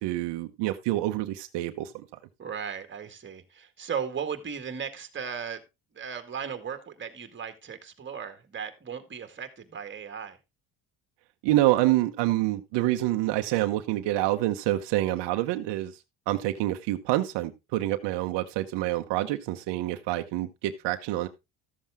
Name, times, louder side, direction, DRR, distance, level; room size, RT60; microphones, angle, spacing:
voice 1, 0.0-1.9 11.4-15.9 16.3-21.3, right 16 dB, 80° right, 0.9 m, -27 dB
voice 2, 2.4-5.6 5.9-10.4, right 7 dB, 25° right, 1.8 m, -36 dB
13.0 x 7.5 x 3.5 m
cardioid pair, 120°, 41 cm